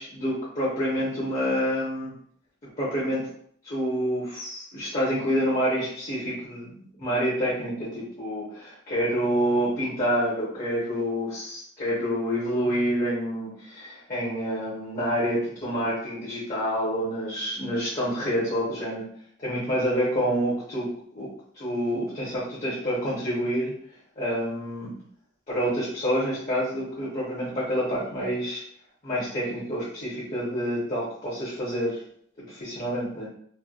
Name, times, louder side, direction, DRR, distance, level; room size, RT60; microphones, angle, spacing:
voice 1, 0.0-2.1 2.6-3.3 3.6-19.0 19.4-21.3 21.6-23.7 24.2-24.9 25.5-28.6 29.0-32.0 32.4-33.3, equal, 40° left, -9 dB, 1.0 m, -28 dB
3.2 x 2.3 x 2.4 m, 0.63 s
head